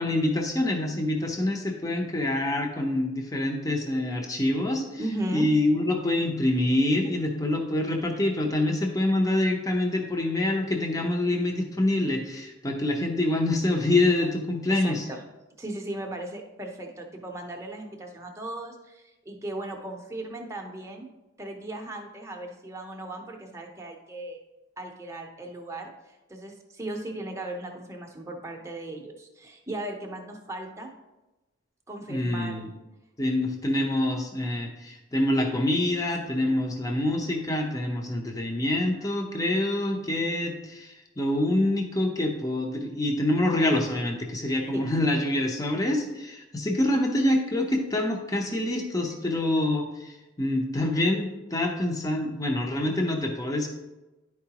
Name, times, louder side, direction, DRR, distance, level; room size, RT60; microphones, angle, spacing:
voice 1, 0.0-4.8 5.3-15.0 32.1-32.7 33.2-53.7, left 1 dB, 15° left, 2 dB, 0.7 m, -26 dB
voice 2, 5.0-5.8 14.2-14.3 14.7-15.2 15.6-21.1 21.4-24.4 24.8-30.9 31.9-32.6 36.2-36.6 44.7-44.9, right 1 dB, 15° right, 1 dB, 0.8 m, -37 dB
11.0 x 4.7 x 2.9 m, 1.1 s
head